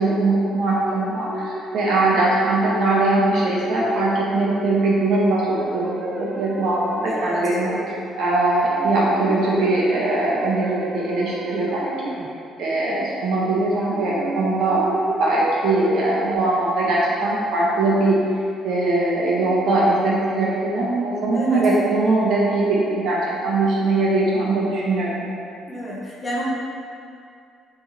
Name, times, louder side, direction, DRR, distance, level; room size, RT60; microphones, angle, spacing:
voice 1, 0.0-7.7 8.2-11.9 12.6-14.8 15.2-18.2 18.6-25.3, right 2 dB, 60° right, -6 dB, 1.5 m, -21 dB
sound 1, 0.7-8.3 8.6-12.7 13.8-16.4, right 1 dB, 20° right, 0.4 m, -34 dB
voice 2, 7.0-7.4 21.3-21.7 25.7-26.4, equal, 20° left, -6 dB, 1.0 m, -30 dB
8.5 x 3.7 x 3.1 m, 2.4 s
cardioid pair, 160°, 0 cm